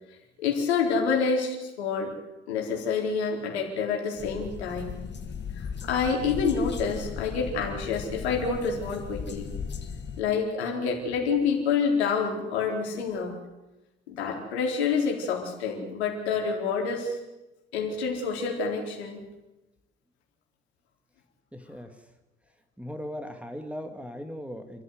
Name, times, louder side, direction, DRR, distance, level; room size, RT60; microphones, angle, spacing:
voice 1, 0.4-2.1 2.5-4.9 5.6-9.5 10.2-13.4 14.1-17.2 17.7-19.2, left 5 dB, 70° left, 0 dB, 4.2 m, -28 dB
sound 1, 4.2-10.2, left 6 dB, 30° left, 2.0 m, -37 dB
voice 2, 21.5-22.0 22.8-24.8, equal, 5° right, 6 dB, 2.3 m, -38 dB
28.0 x 14.0 x 8.0 m, 1.0 s
figure-of-eight pair, 60°, 33 cm